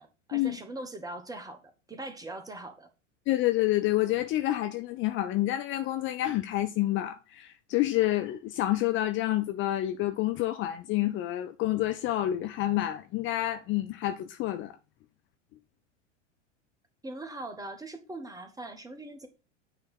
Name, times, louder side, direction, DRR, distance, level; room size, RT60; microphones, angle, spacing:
voice 1, 0.0-2.9 17.0-19.3, right 2 dB, 10° right, 1.2 m, -41 dB
voice 2, 3.3-14.8, left 15 dB, 35° left, 0.6 m, -28 dB
9.2 x 3.2 x 5.6 m
figure-of-eight pair, 85°, 37 cm